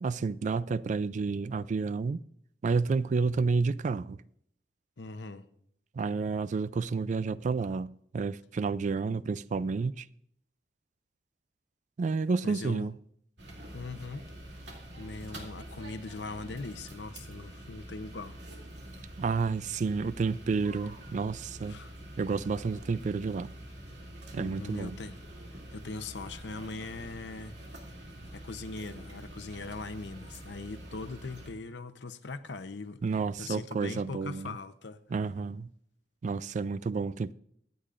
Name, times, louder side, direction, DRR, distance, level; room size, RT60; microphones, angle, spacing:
voice 1, 0.0-2.2 2.6-4.2 5.9-10.1 12.0-13.0 19.2-21.8 22.2-23.5 24.3-25.0 33.0-34.5 35.1-35.7 36.2-37.3, right 4 dB, 45° right, 0.3 m, -30 dB
voice 2, 5.0-5.4 12.4-12.9 13.7-14.2 15.0-18.4 21.6-21.9 24.3-25.2 25.7-27.5 28.3-33.0 33.4-35.0, left 3 dB, 85° left, 0.8 m, -40 dB
sound 1, 13.4-31.5, right 1 dB, 85° right, 2.6 m, -46 dB
24.5 x 8.3 x 2.5 m
head